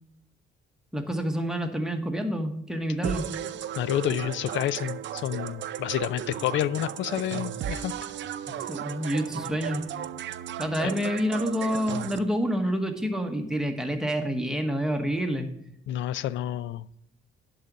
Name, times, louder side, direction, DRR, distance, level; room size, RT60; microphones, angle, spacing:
voice 1, 0.9-3.3 8.5-9.9 10.6-15.5, equal, 5° right, 4 dB, 1.2 m, -28 dB
sound 1, 3.0-12.2, right 10 dB, 65° right, 0.6 m, -35 dB
voice 2, 3.8-7.9 15.9-16.8, left 12 dB, 75° left, 18 dB, 0.4 m, -29 dB
11.0 x 4.0 x 7.2 m, 0.75 s
cardioid pair, 90°, 20 cm